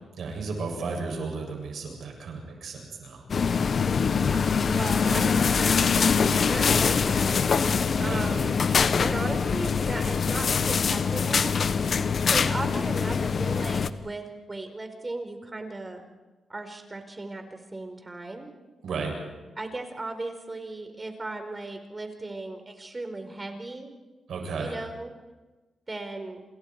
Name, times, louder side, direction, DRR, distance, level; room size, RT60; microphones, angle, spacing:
voice 1, 0.2-3.5 5.1-5.4 8.0-8.3 18.8-19.1 24.3-24.7, right 4 dB, 75° right, 1 dB, 8.0 m, -34 dB
sound 1, 3.3-13.9, left 5 dB, 55° left, 1.1 m, -24 dB
voice 2, 4.2-7.7 8.0-8.7 9.0-11.6 12.3-16.0 16.5-18.5 19.6-23.9 24.6-25.1 25.9-26.4, right 2 dB, 25° right, 6 dB, 4.6 m, -36 dB
28.5 x 27.5 x 4.8 m, 1.2 s
cardioid pair, 70°, 0 cm